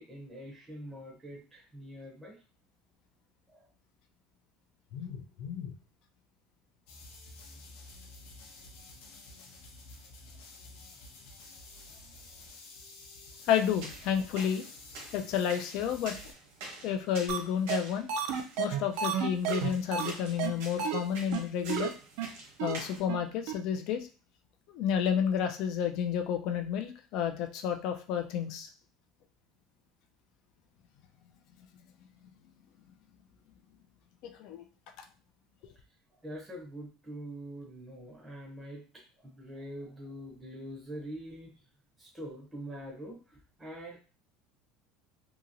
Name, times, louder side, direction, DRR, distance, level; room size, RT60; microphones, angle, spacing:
voice 1, 0.0-2.4 3.5-3.7 36.2-41.5 42.0-44.0, equal, 10° right, -3 dB, 0.7 m, -44 dB
voice 2, 4.9-5.7 13.5-14.6 15.1-16.1 16.8-18.1 18.6-21.9 22.6-24.1 24.7-28.7 34.2-34.6, left 8 dB, 50° left, 7 dB, 0.4 m, -31 dB
sound 1, 6.9-16.3, left 2 dB, 70° left, 0.8 m, -51 dB
sound 2, 13.5-23.0, right 2 dB, 75° right, 1.0 m, -48 dB
sound 3, 17.3-17.4 17.7-17.8 18.1-20.1 20.4-20.5 20.8-21.0 21.3-21.4 21.7-21.9 22.2-22.3 22.6-22.7 23.1-23.2 23.5-23.6, right 8 dB, 60° right, 0.4 m, -31 dB
2.8 x 2.7 x 2.6 m, 0.35 s
cardioid pair, 175°, 0 cm